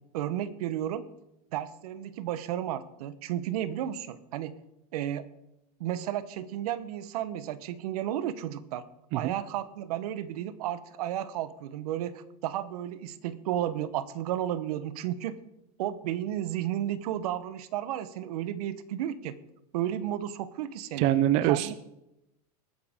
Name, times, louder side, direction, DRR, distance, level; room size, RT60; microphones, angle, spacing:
voice 1, 0.1-1.0 1.5-4.5 4.9-5.3 5.8-8.8 9.1-15.4 15.8-19.3 19.7-21.1 21.4-21.7, right 11 dB, 75° right, 15 dB, 1.0 m, -33 dB
voice 2, 21.0-21.7, right 13 dB, 30° right, 14 dB, 0.4 m, -24 dB
20.0 x 9.2 x 3.6 m, 0.87 s
supercardioid pair, 165°, 20 cm